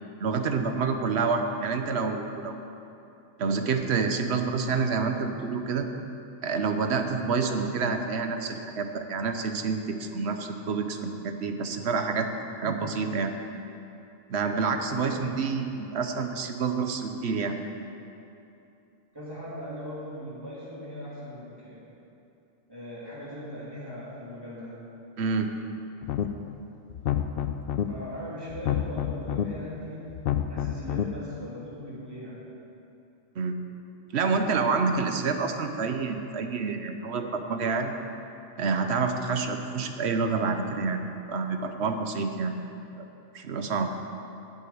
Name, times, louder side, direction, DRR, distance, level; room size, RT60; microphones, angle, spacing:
voice 1, 0.2-2.5 3.4-5.9 6.4-12.3 12.6-13.3 14.3-17.6 25.2-25.5 33.4-33.6 34.1-37.9 38.6-41.0 41.3-42.6 43.0-43.1 43.3-43.9, right 4 dB, 65° right, 6 dB, 1.1 m, -28 dB
voice 2, 14.9-15.4 19.1-21.8 22.7-24.8 27.9-30.1 30.5-32.4, equal, 20° right, -8 dB, 3.1 m, -39 dB
sound 1, 26.0-26.5 26.9-27.8 28.5-29.4 30.1-31.0, left 10 dB, 60° left, 0.7 m, -28 dB
8.5 x 7.6 x 8.7 m, 2.8 s
omnidirectional pair, 1.2 m